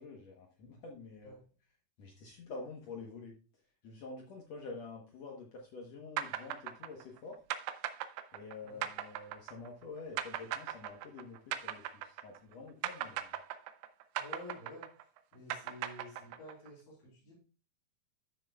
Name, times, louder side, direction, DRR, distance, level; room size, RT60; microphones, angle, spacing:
voice 1, 0.0-1.4 2.0-3.4 3.8-7.4 8.3-13.3, left 3 dB, 65° left, 0 dB, 1.9 m, -48 dB
sound 1, 6.2-12.5 12.8-16.7, right 12 dB, 85° right, 2.4 m, -39 dB
voice 2, 14.2-14.9 15.3-17.4, left 1 dB, 85° left, -4 dB, 5.3 m, -50 dB
12.5 x 6.4 x 2.3 m, 0.34 s
omnidirectional pair, 4.0 m